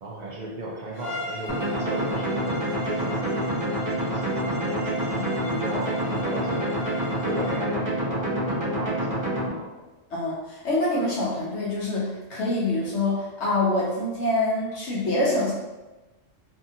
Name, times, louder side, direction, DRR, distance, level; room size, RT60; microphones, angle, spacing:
voice 1, 0.0-5.2 5.5-6.8 7.2-9.7, right 1 dB, 70° right, -3 dB, 0.4 m, -35 dB
Bowed string instrument, 0.9-7.7, left 1 dB, 40° left, 0.7 m, -38 dB
sound 1, 1.5-9.5, right 1 dB, 20° right, 0.6 m, -27 dB
voice 2, 5.2-5.7 10.1-15.5, left 2 dB, 65° left, -6 dB, 0.9 m, -26 dB
2.7 x 2.6 x 2.6 m, 1.1 s
omnidirectional pair, 1.3 m